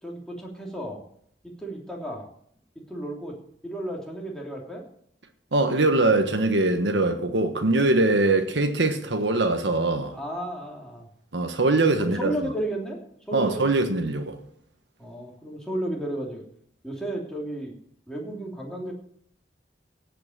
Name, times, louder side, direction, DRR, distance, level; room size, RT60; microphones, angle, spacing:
voice 1, 0.0-1.0 1.4-2.3 2.9-3.4 3.6-4.8 10.1-11.1 12.0-13.0 13.3-13.6 15.0-16.4 16.8-17.7 18.1-18.9, right 1 dB, 5° left, 3.1 m, -33 dB
voice 2, 5.5-10.1 11.3-12.3 13.3-14.4, right 2 dB, 80° right, 1.3 m, -22 dB
17.5 x 5.9 x 7.3 m
head